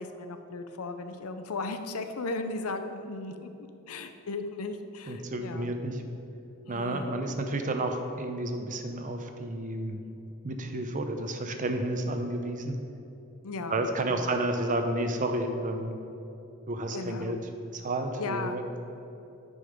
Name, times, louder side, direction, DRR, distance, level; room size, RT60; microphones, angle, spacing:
voice 1, 0.0-5.7 6.7-7.3 13.4-13.8 14.1-14.3 16.9-17.4 18.2-18.6, left 3 dB, 80° left, 8 dB, 0.6 m, -36 dB
voice 2, 5.1-6.0 6.7-10.0 10.4-12.8 13.7-16.0 16.7-17.4 17.7-18.8, right 1 dB, 35° right, 5 dB, 0.7 m, -31 dB
9.9 x 5.4 x 5.1 m, 2.9 s
head